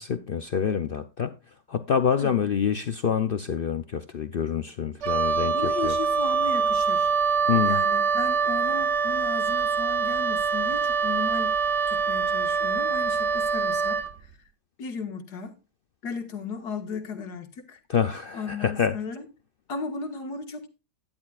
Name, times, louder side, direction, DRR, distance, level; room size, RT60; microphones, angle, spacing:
voice 1, 0.0-1.3 1.7-5.5 5.8-5.9 7.5-7.8 17.9-19.0, left 7 dB, 65° left, 0.5 m, -26 dB
Wind instrument woodwind instrument, 5.0-14.1, right 5 dB, 55° right, 0.9 m, -24 dB
voice 2, 5.5-7.1 7.7-11.5 11.9-14.3 14.8-15.6 16.0-17.8 18.3-19.3 19.7-20.7, left 4 dB, 85° left, 2.1 m, -35 dB
12.0 x 10.5 x 2.4 m
omnidirectional pair, 1.7 m